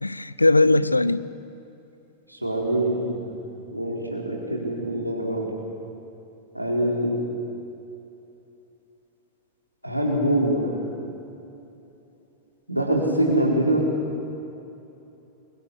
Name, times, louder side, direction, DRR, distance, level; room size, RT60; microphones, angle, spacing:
voice 1, 0.0-1.2, left 2 dB, 85° left, 17 dB, 0.6 m, -19 dB
voice 2, 2.3-3.2 3.7-5.5 6.5-7.1 9.8-10.7 12.7-13.8, right 1 dB, 90° right, -1 dB, 4.2 m, -24 dB
27.0 x 23.0 x 6.4 m, 2.9 s
figure-of-eight pair, 90°, 0 cm